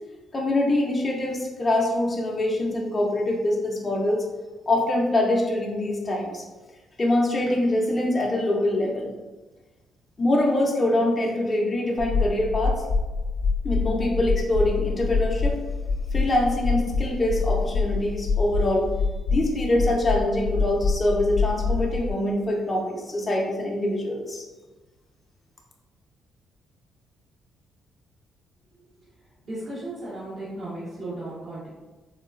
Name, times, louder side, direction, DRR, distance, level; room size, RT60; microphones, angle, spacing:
voice 1, 0.3-4.3 4.7-6.4 7.0-9.1 10.2-12.8 13.6-15.5 16.1-18.9 19.3-24.4, left 1 dB, 25° left, -1 dB, 0.6 m, -24 dB
sound 1, 12.0-22.1, left 4 dB, 85° left, 0.5 m, -26 dB
voice 2, 29.4-31.7, right 1 dB, 60° right, -11 dB, 1.0 m, -35 dB
3.7 x 2.3 x 2.4 m, 1.2 s
cardioid pair, 90°, 0 cm